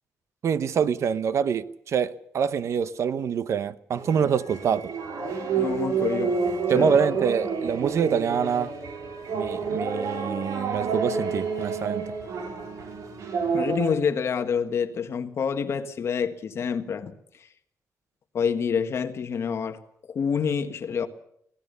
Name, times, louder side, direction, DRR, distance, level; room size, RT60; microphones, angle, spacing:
voice 1, 0.4-4.9 6.7-8.7 9.3-12.1, right 7 dB, 60° right, 0.9 m, -25 dB
sound 1, 4.0-13.9, right 5 dB, 90° right, 4.6 m, -29 dB
voice 2, 5.5-6.4 6.7-7.0 13.5-17.1 18.3-19.8 20.1-21.1, left 6 dB, 50° left, 1.6 m, -27 dB
24.5 x 17.5 x 6.9 m
wide cardioid pair, 160°, 6 cm